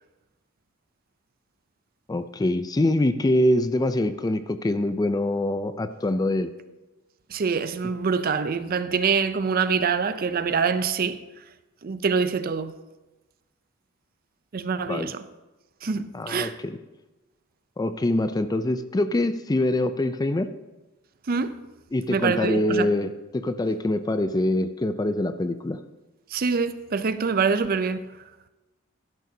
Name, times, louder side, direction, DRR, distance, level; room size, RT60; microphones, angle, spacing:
voice 1, 2.1-6.5 14.9-15.1 16.1-16.8 17.8-20.5 21.9-25.8, left 1 dB, 20° left, 0.4 m, -24 dB
voice 2, 7.3-11.2 11.8-12.7 14.5-15.2 15.8-16.6 21.3-21.6 22.1-22.9 26.3-28.0, right 5 dB, 45° right, 0.5 m, -25 dB
12.0 x 10.5 x 2.7 m
head